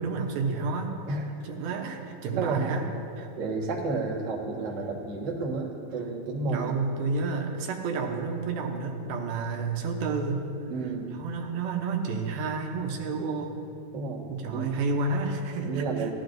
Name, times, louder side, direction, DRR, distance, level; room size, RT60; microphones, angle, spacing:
voice 1, 0.0-1.0 1.4-2.9 3.2-3.3 6.5-10.4 11.1-13.6 14.3-16.1, right 4 dB, 75° right, 2 dB, 2.6 m, -30 dB
voice 2, 2.3-2.7 3.4-6.7 10.7-11.2 13.9-14.2 14.5-14.7 15.6-16.1, right 3 dB, 60° right, -4 dB, 1.1 m, -31 dB
17.5 x 12.0 x 2.6 m, 2.6 s
omnidirectional pair, 4.5 m